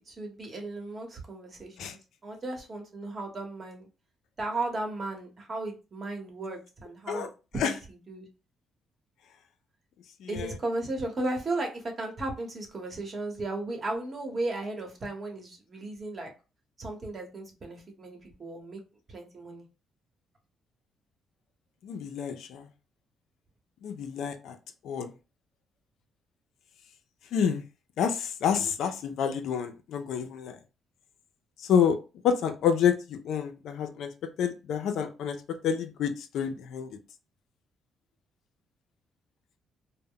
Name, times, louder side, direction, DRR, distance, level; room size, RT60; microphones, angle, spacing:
voice 1, 0.1-3.9 4.4-7.3 7.5-8.3 10.3-16.3 16.8-18.8 19.1-19.6, right 2 dB, 40° right, 1.0 m, -35 dB
voice 2, 10.2-10.5 21.8-22.7 23.8-24.6 24.8-25.1 27.3-27.6 28.0-30.6 31.6-32.0 32.2-34.1 34.4-36.9, left 7 dB, 75° left, 0.4 m, -28 dB
2.1 x 2.0 x 3.6 m
cardioid pair, 90°, 0 cm